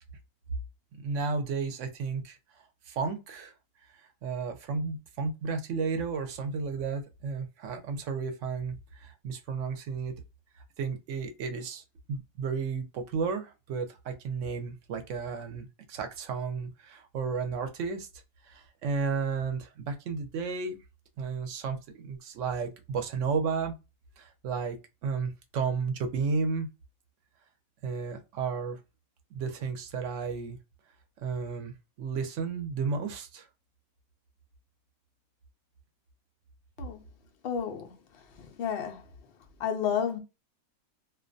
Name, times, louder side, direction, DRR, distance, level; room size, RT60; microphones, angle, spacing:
voice 1, 1.0-3.5 4.2-10.1 10.8-11.8 12.1-18.1 18.4-20.8 21.2-23.7 24.2-26.7 27.8-28.8 29.3-30.6 31.2-33.5, right 5 dB, 65° right, 0.9 m, -33 dB
voice 2, 37.4-39.0 39.6-40.2, left 8 dB, 85° left, 0.5 m, -32 dB
2.5 x 2.2 x 2.5 m
omnidirectional pair, 1.6 m